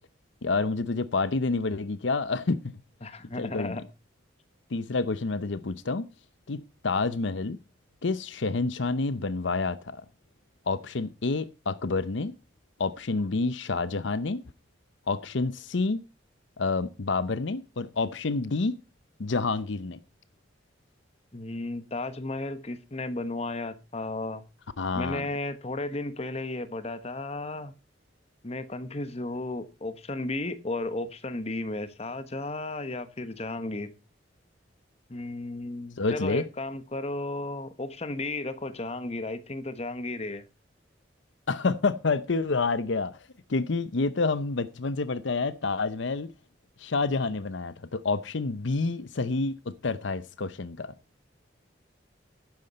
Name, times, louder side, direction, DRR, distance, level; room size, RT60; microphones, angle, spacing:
voice 1, 0.4-2.7 3.4-3.8 4.7-6.1 6.5-7.6 8.0-10.0 10.7-12.3 12.8-14.4 15.1-16.0 16.6-18.8 19.2-20.0 24.8-25.3 36.0-36.4 41.5-46.3 46.8-50.9, left 3 dB, 70° left, 0.7 m, -28 dB
voice 2, 3.0-3.8 21.3-24.4 24.9-27.7 28.4-34.0 35.1-40.4, left 2 dB, 35° left, 1.2 m, -34 dB
12.0 x 9.6 x 4.3 m
head